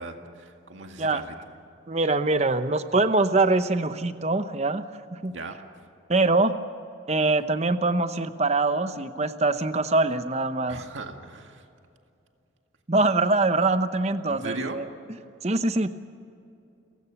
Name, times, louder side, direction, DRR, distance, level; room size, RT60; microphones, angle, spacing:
voice 1, 0.0-1.6 5.3-5.6 10.7-11.7 14.3-14.8, right 2 dB, 80° right, 4 dB, 2.0 m, -38 dB
voice 2, 1.9-4.9 5.1-5.3 6.1-6.5 7.1-10.8 12.9-14.9 15.4-15.9, right 2 dB, 35° right, 10 dB, 0.9 m, -23 dB
30.0 x 17.0 x 7.1 m, 2.6 s
head